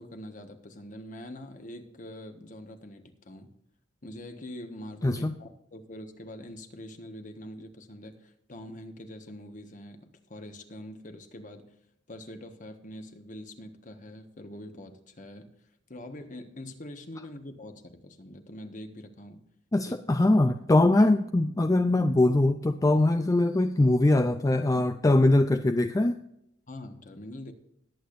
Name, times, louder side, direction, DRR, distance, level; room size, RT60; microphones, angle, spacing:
voice 1, 0.0-3.5 4.0-11.7 12.1-15.5 15.9-19.4 19.9-20.0 26.7-27.5, left 1 dB, 45° left, 7 dB, 1.4 m, -44 dB
voice 2, 5.0-5.3 19.7-26.2, left 2 dB, 20° left, 8 dB, 0.4 m, -22 dB
20.0 x 8.4 x 2.6 m, 0.78 s
head